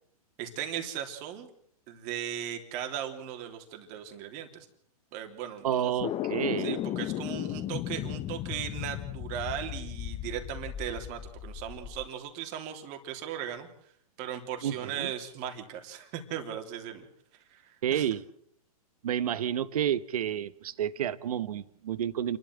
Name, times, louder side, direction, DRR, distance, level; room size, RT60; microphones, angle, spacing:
voice 1, 0.4-1.5 1.9-4.7 5.1-6.0 6.6-13.7 14.2-17.0 17.5-18.1, right 10 dB, 40° right, 3.3 m, -37 dB
voice 2, 5.6-6.8 14.6-15.1 17.8-18.2 19.0-22.4, right 10 dB, 70° right, 1.2 m, -30 dB
sound 1, 6.0-12.1, left 12 dB, 30° left, 1.1 m, -35 dB
29.0 x 12.0 x 7.7 m
hypercardioid pair, 125°, 20 cm